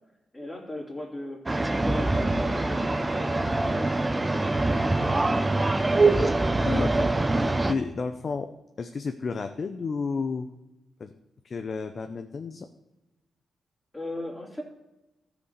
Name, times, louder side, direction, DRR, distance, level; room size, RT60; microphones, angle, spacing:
voice 1, 0.3-5.3 13.9-14.6, left 1 dB, 15° left, 0 dB, 3.0 m, -38 dB
sound 1, 1.5-7.7, right 2 dB, 20° right, 0.8 m, -24 dB
voice 2, 6.6-7.1 7.3-8.5 8.8-10.5 11.0-11.1 11.4-12.7, left 4 dB, 50° left, 7 dB, 0.7 m, -31 dB
14.0 x 5.1 x 6.7 m, 0.97 s
cardioid pair, 75°, 0 cm